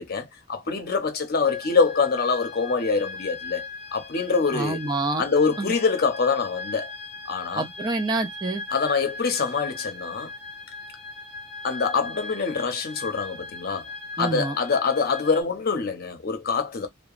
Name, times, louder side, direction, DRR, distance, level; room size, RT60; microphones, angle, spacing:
voice 1, 0.0-4.8 5.2-6.9 7.3-7.7 8.7-10.3 11.6-13.9 14.2-16.9, left 5 dB, 50° left, 0.7 m, -25 dB
sound 1, 1.4-15.4, left 3 dB, ahead, 1.2 m, -39 dB
voice 2, 4.5-5.2 5.6-5.7 7.6-8.6 14.2-14.6, right 2 dB, 20° right, 0.4 m, -27 dB
2.8 x 2.1 x 2.4 m
head